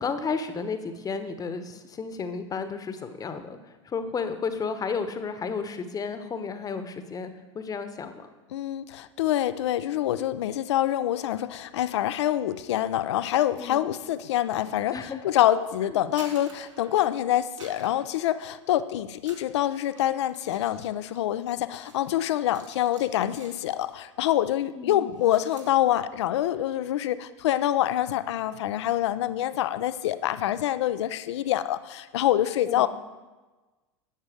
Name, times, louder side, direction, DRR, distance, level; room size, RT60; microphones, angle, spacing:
voice 1, 0.0-3.6 3.8-8.3 13.6-13.8 14.9-15.2 15.8-16.0 24.8-25.1 32.7-32.9, left 5 dB, 25° left, 10 dB, 1.0 m, -32 dB
voice 2, 8.5-32.9, left 12 dB, 65° left, 14 dB, 0.5 m, -26 dB
sound 1, 15.9-17.2 17.5-18.8 19.1-24.1 24.4-24.6 24.9-25.7, right 3 dB, 85° right, 2.3 m, -51 dB
11.0 x 8.2 x 4.9 m, 1.2 s
figure-of-eight pair, 80°, 15 cm